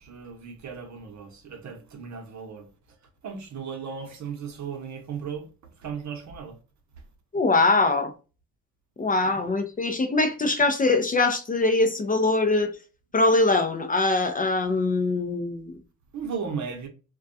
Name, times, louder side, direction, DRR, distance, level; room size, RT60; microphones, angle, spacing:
voice 1, 0.0-2.7 3.2-5.5 5.8-6.6 9.4-9.5 16.1-16.9, right 6 dB, 60° right, 0.8 m, -36 dB
voice 2, 7.3-8.1 9.0-12.7 13.1-15.7, left 3 dB, 25° left, 0.4 m, -22 dB
2.2 x 2.2 x 2.6 m
cardioid pair, 80°, 33 cm